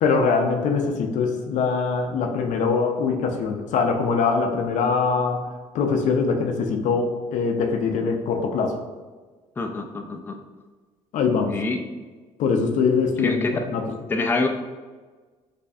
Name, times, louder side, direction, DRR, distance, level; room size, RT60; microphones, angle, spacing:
voice 1, 0.0-8.8 11.1-11.6 12.4-13.4 13.7-13.8, left 5 dB, 70° left, 4 dB, 0.5 m, -23 dB
voice 2, 9.6-10.3 11.5-11.8 13.2-13.7 14.1-14.5, left 3 dB, 15° left, 4 dB, 0.3 m, -25 dB
3.3 x 3.0 x 2.6 m, 1.4 s
cardioid pair, 90°, 13 cm